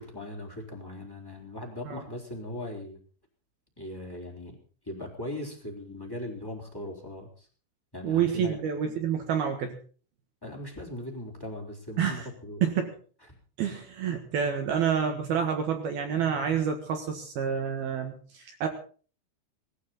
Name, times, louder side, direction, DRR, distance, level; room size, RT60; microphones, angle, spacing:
voice 1, 0.0-3.0 3.8-4.6 4.8-7.5 7.9-8.6 10.4-12.6, left 1 dB, 5° left, 2 dB, 2.9 m, -39 dB
voice 2, 8.0-9.8 12.0-12.3 12.6-12.9 13.6-18.7, right 7 dB, 60° right, 4 dB, 3.0 m, -28 dB
19.5 x 15.0 x 4.3 m, 0.40 s
omnidirectional pair, 5.7 m